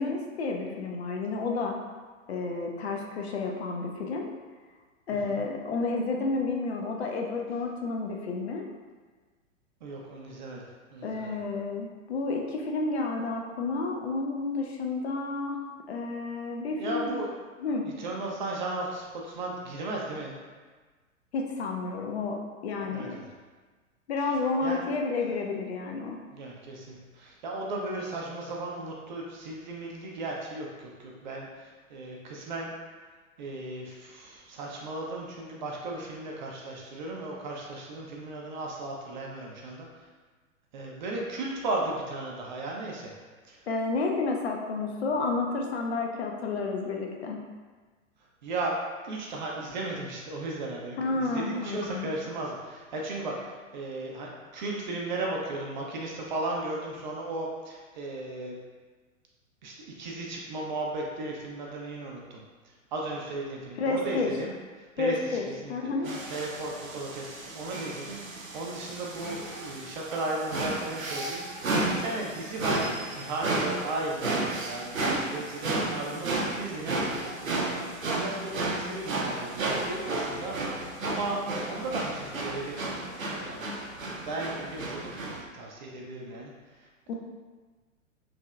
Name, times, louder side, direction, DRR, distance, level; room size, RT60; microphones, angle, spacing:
voice 1, 0.0-1.8 2.3-4.3 5.1-8.7 11.0-15.6 15.9-17.1 17.6-17.9 21.3-23.2 24.1-26.2 43.7-47.4 51.0-52.1 63.8-64.3 65.0-66.1 87.1-87.2, left 3 dB, 55° left, 1 dB, 0.5 m, -30 dB
voice 2, 5.1-5.4 9.8-10.7 10.9-11.4 16.8-17.3 17.8-20.3 22.8-23.3 24.6-24.8 26.3-32.7 33.4-40.1 40.7-43.1 43.4-43.6 48.4-48.8 49.0-58.6 59.6-62.4 62.9-65.7 66.3-81.4 81.7-82.8 83.4-83.7 84.0-86.5 86.8-87.1, right 2 dB, 35° right, -2 dB, 0.5 m, -36 dB
sound 1, 66.0-85.4, right 2 dB, 85° right, 0.5 m, -33 dB
3.3 x 2.6 x 2.3 m, 1.4 s
figure-of-eight pair, 105°, 40 cm